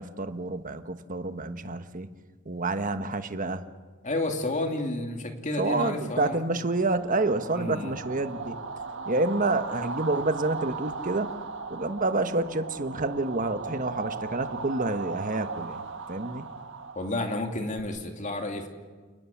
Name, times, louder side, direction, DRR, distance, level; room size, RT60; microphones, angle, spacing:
voice 1, 0.0-2.1 2.5-3.7 5.6-8.6 9.0-11.3 11.7-15.8 16.1-16.4, right 2 dB, 35° right, 10 dB, 1.3 m, -28 dB
voice 2, 4.0-6.4 7.5-8.0 17.0-18.7, left 2 dB, 35° left, 4 dB, 2.8 m, -31 dB
sound 1, 6.7-17.8, right 4 dB, 55° right, 1.5 m, -37 dB
29.0 x 20.0 x 7.3 m, 1.4 s
head